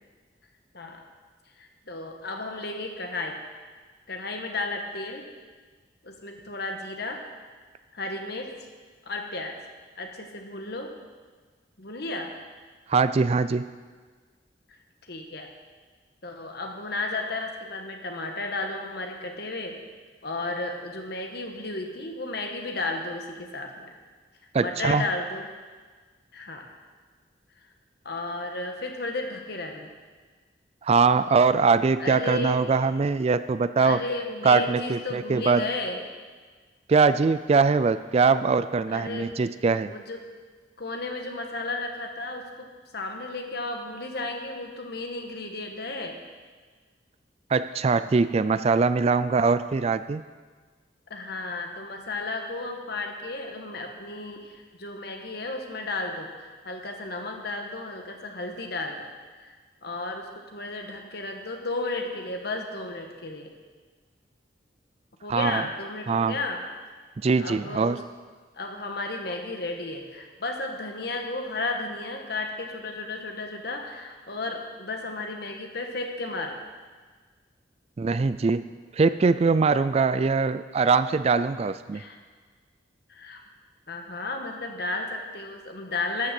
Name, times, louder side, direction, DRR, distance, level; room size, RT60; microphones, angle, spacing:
voice 1, 0.7-1.1 1.6-3.4 4.1-5.2 6.0-7.2 7.9-8.5 9.0-9.6 10.0-10.9 11.8-12.3 15.1-15.5 16.2-19.8 20.2-23.9 24.6-25.5 26.3-26.7 28.0-30.0 32.0-32.6 33.8-36.0 38.9-39.3 39.9-40.2 40.8-42.7 42.9-46.2 51.1-59.1 59.4-63.5 65.2-66.6 67.4-68.0 68.6-76.6 81.9-82.2 83.1-83.4 83.9-86.3, left 2 dB, 60° left, 3 dB, 1.5 m, -33 dB
voice 2, 12.9-13.7 24.5-25.0 30.8-34.0 34.4-35.6 36.9-39.9 47.5-50.2 65.3-65.7 66.1-66.4 67.2-68.0 78.0-78.6 78.9-82.0, right 4 dB, 35° right, 14 dB, 0.3 m, -22 dB
13.0 x 6.6 x 7.7 m, 1.4 s
head